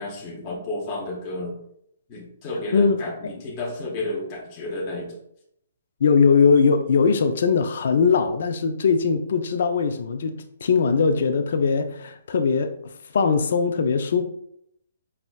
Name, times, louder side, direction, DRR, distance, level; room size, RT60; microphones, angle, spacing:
voice 1, 0.0-1.5 2.1-5.2, left 2 dB, 30° left, 0.8 m, -31 dB
voice 2, 6.0-14.2, left 5 dB, 65° left, 0.4 m, -20 dB
5.5 x 2.1 x 2.3 m
hypercardioid pair, 150°, 0 cm